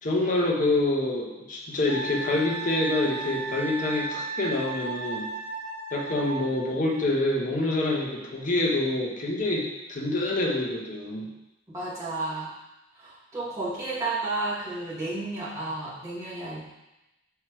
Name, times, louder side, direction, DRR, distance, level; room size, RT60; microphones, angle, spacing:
voice 1, 0.0-5.3 5.9-11.3, left 2 dB, 40° left, -2 dB, 1.3 m, -26 dB
Wind instrument woodwind instrument, 1.9-6.7, right 3 dB, 45° right, 1.1 m, -35 dB
voice 2, 11.7-12.5 13.0-16.6, right 2 dB, 15° right, -9 dB, 2.5 m, -32 dB
5.3 x 4.8 x 6.3 m, 0.95 s
head